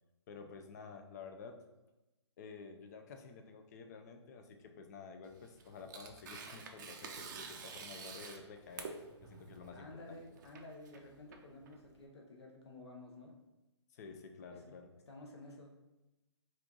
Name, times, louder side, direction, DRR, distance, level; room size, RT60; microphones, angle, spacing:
voice 1, 0.3-1.6 2.4-8.9 9.2-10.2 13.9-14.9, left 5 dB, 35° left, 5 dB, 0.5 m, -51 dB
Tearing, 5.2-12.0, right 5 dB, 40° right, 0.5 m, -49 dB
voice 2, 9.7-13.3 14.5-14.7 15.1-15.7, left 2 dB, 65° left, 1 dB, 0.8 m, -52 dB
4.3 x 2.5 x 3.8 m, 1.0 s
hypercardioid pair, 145°, 15 cm